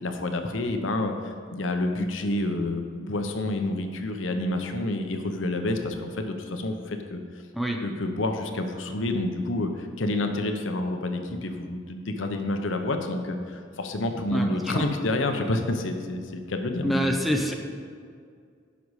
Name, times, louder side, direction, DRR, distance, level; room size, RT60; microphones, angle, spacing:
voice 1, 0.0-1.1 1.5-6.3 6.6-6.7 7.1-7.2 7.8-9.7 10.0-13.4 13.8-16.2 16.5-17.2, left 2 dB, 75° left, 5 dB, 0.8 m, -28 dB
voice 2, 14.3-14.9 16.8-17.5, equal, ahead, 1 dB, 0.7 m, -26 dB
11.0 x 5.4 x 4.9 m, 2.1 s
head